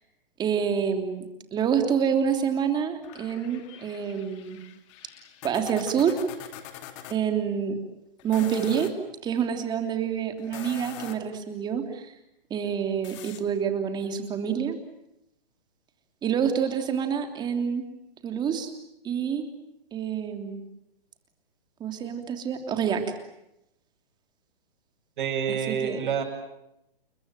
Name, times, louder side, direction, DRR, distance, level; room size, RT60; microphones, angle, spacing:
voice 1, 0.4-1.2 1.5-4.6 5.4-6.2 7.1-7.7 8.2-8.9 9.2-12.1 12.5-14.7 16.2-17.8 18.2-18.7 19.0-19.5 19.9-20.6 21.8-23.0 25.5-26.0, right 7 dB, 15° right, 5 dB, 3.1 m, -27 dB
sound 1, 3.0-7.2 8.2-9.0 10.4-11.4 13.0-13.4, left 11 dB, 30° left, 2.4 m, -44 dB
voice 2, 25.2-26.2, right 7 dB, 55° right, 4 dB, 7.9 m, -27 dB
30.0 x 21.5 x 9.2 m, 0.86 s
hypercardioid pair, 145°, 29 cm